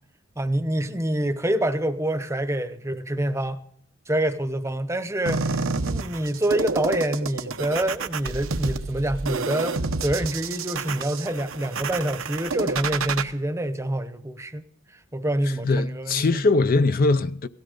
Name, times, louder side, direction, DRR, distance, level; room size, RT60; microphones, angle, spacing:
voice 1, 0.4-3.6 4.1-14.6 15.1-16.4, right 1 dB, 15° right, 0.8 m, -26 dB
sound 1, 5.3-13.2, right 4 dB, 90° right, 1.0 m, -29 dB
voice 2, 15.6-17.5, left 3 dB, 45° left, 0.5 m, -21 dB
17.5 x 13.5 x 3.9 m
head